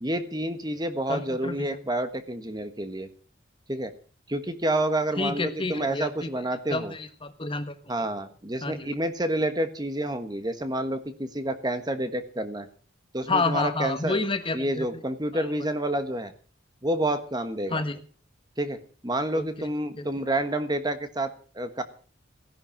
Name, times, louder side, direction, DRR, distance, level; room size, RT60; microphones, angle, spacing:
voice 1, 0.0-3.1 3.7-3.9 4.3-6.9 7.9-12.7 13.1-14.2 14.5-16.3 16.8-17.8 18.6-21.8, right 1 dB, 20° right, 9 dB, 1.3 m, -29 dB
voice 2, 1.1-1.7 5.2-6.3 6.7-7.7 8.6-8.9 13.3-14.9 15.3-15.5 17.7-18.0 19.3-19.7 20.0-20.1, left 3 dB, 25° left, 10 dB, 1.4 m, -29 dB
16.5 x 11.0 x 7.3 m, 0.41 s
head